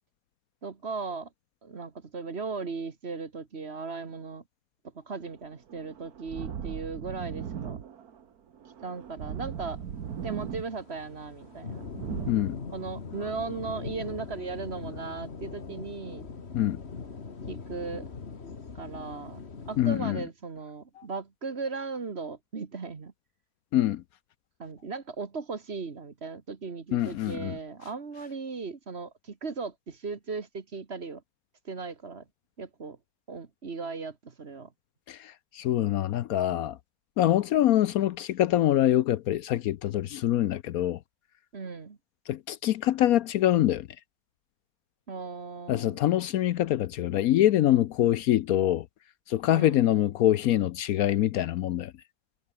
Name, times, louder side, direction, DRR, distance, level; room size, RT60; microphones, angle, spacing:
voice 1, 0.6-1.3 1.6-4.4 4.9-7.8 8.8-9.8 10.2-11.9 12.7-16.3 17.5-18.1 18.7-23.1 24.6-31.2 31.6-32.2 32.6-33.0 33.3-34.7 41.5-42.0 45.1-46.0 49.5-49.8, right 4 dB, 40° right, 1.7 m, -37 dB
sound 1, 5.2-12.3, right 8 dB, 70° right, 1.8 m, -39 dB
sound 2, 9.3-20.0, left 5 dB, 40° left, 1.9 m, -41 dB
voice 2, 12.3-12.6 16.5-16.8 19.8-20.2 21.0-21.1 23.7-24.0 26.9-27.6 35.1-36.8 37.2-41.0 42.3-43.9 45.7-48.9 49.3-51.9, left 13 dB, 70° left, 1.0 m, -25 dB
omnidirectional pair, 1.7 m